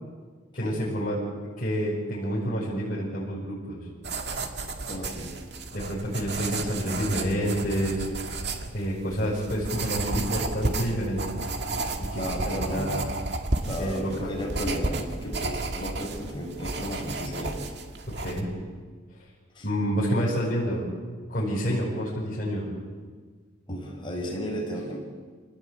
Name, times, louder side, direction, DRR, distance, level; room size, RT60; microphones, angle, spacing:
voice 1, 0.5-3.8 5.7-8.1 8.7-11.2 12.0-13.1 13.8-14.3 18.1-18.5 19.6-20.9 21.3-22.7, equal, 40° left, -7 dB, 6.9 m, -28 dB
sound 1, 4.0-18.4, right 2 dB, 55° right, 2.2 m, -32 dB
voice 2, 4.8-5.3 12.1-12.9 13.6-17.6 19.5-19.7 23.7-25.0, equal, 25° left, -1 dB, 6.6 m, -34 dB
27.5 x 19.0 x 8.8 m, 1.5 s
head